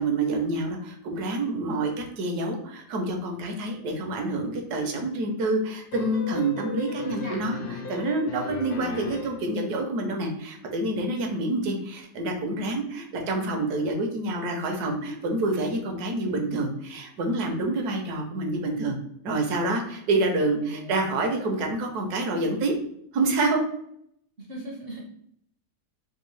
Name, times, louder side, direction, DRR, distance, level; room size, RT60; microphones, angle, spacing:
voice 1, 0.0-19.0 19.2-22.7 23.1-23.6, right 2 dB, 75° right, 3 dB, 1.2 m, -27 dB
sound 1, 5.9-9.5, left 5 dB, 75° left, 1.1 m, -36 dB
voice 2, 7.0-7.7 20.6-21.0 24.5-25.1, right 1 dB, 55° right, -2 dB, 0.6 m, -39 dB
3.5 x 2.6 x 3.1 m, 0.71 s
omnidirectional pair, 1.8 m